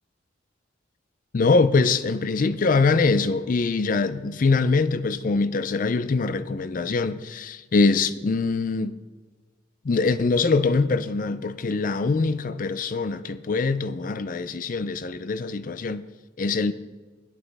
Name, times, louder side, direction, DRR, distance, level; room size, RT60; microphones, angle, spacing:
voice 1, 1.3-8.9 9.8-16.1 16.4-16.7, left 4 dB, 45° left, 0.4 m, -23 dB
13.5 x 11.0 x 3.5 m
head